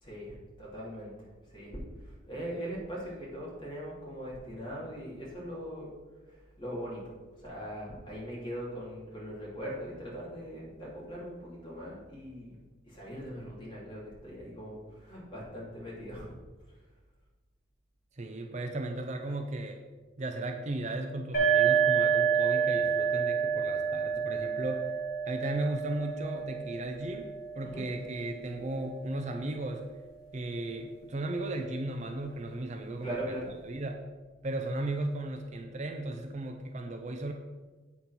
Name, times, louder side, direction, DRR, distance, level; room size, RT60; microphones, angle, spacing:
voice 1, 0.0-5.9 6.3-7.1 7.4-12.6 12.9-16.3 27.6-27.8 33.0-33.5, equal, 25° left, -6 dB, 2.8 m, -40 dB
voice 2, 18.1-19.8 20.2-24.9 25.2-29.8 30.3-33.4 33.6-34.0 34.4-37.3, right 2 dB, 40° right, 4 dB, 0.6 m, -35 dB
sound 1, 21.3-28.8, right 7 dB, 50° left, 2.1 m, -29 dB
8.4 x 4.2 x 6.0 m, 1.3 s
head